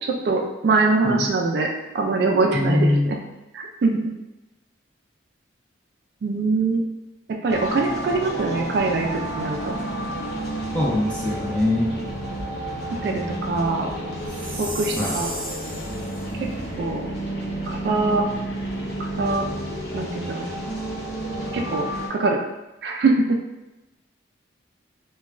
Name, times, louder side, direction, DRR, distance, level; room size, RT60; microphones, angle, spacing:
voice 1, 0.0-1.7 1.9-3.2 3.5-4.0 6.2-6.8 7.4-9.7 13.0-13.9 14.6-15.3 16.8-17.1 17.7-18.2 19.0-19.4 19.9-20.5 21.5-22.4 22.8-23.4, right 3 dB, 60° right, 2 dB, 0.3 m, -23 dB
voice 2, 2.5-3.1 10.7-11.9 15.0-15.1, left 1 dB, 5° left, -6 dB, 0.6 m, -22 dB
sound 1, 7.5-22.1, right 1 dB, 60° left, 0.6 m, -31 dB
Chime, 14.2-16.2, right 1 dB, 40° right, 0.9 m, -34 dB
3.0 x 2.2 x 2.4 m, 1.0 s
head